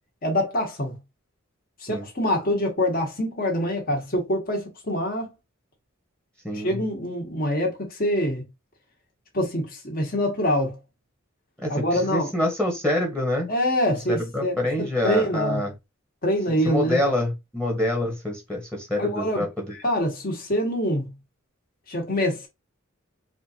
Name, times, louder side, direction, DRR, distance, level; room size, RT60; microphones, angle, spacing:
voice 1, 0.2-0.9 1.8-5.3 6.5-8.4 9.3-10.8 11.7-12.3 13.5-15.6 16.2-17.0 19.0-19.5 19.8-21.1 21.9-22.5, equal, 45° left, 1.4 m, -25 dB
voice 2, 6.4-6.8 11.6-11.7 12.0-13.5 14.1-15.7 16.5-19.8, left 1 dB, 5° left, 1.1 m, -26 dB
4.3 x 2.5 x 2.8 m
head